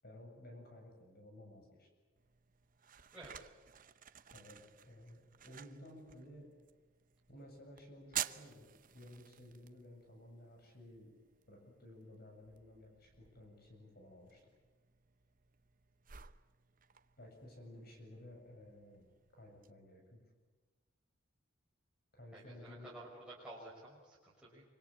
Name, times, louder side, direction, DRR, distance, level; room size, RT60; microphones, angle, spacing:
voice 1, 0.0-1.9 4.3-6.5 7.3-11.1 11.5-14.4 17.2-19.1 19.3-20.2 22.1-22.9, left 1 dB, 50° left, 2 dB, 7.5 m, -55 dB
sound 1, 2.2-19.7, right 11 dB, 40° right, 0.8 m, -51 dB
voice 2, 22.3-24.6, right 2 dB, 5° right, -8 dB, 6.0 m, -52 dB
26.0 x 25.5 x 8.6 m, 1.3 s
head